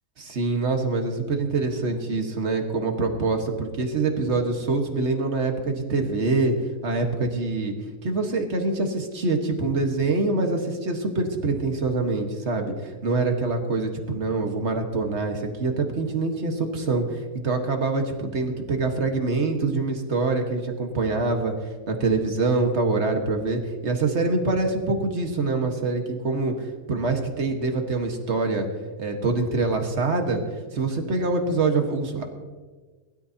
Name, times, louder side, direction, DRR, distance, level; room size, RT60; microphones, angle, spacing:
voice 1, 0.2-6.5 6.8-7.7 8.0-21.5 21.9-26.5 26.9-28.7 29.0-30.4 30.7-32.2, right 3 dB, 45° right, 4 dB, 1.7 m, -25 dB
21.5 x 12.5 x 2.8 m, 1.4 s
omnidirectional pair, 1.7 m